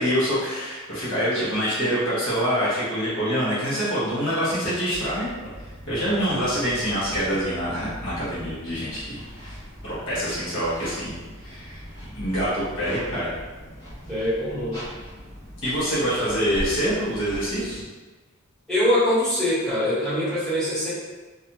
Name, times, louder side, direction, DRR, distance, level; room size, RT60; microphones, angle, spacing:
voice 1, 0.0-5.3 5.9-9.6 9.8-11.8 12.1-13.3 15.6-17.8, equal, 60° left, -9 dB, 0.9 m, -25 dB
Sandy Footsteps and scrapes, 4.9-17.9, equal, 20° left, 1.0 m, -40 dB
voice 2, 14.0-14.8 18.7-20.9, left 1 dB, 5° left, -14 dB, 1.3 m, -23 dB
2.4 x 2.3 x 2.8 m, 1.2 s
head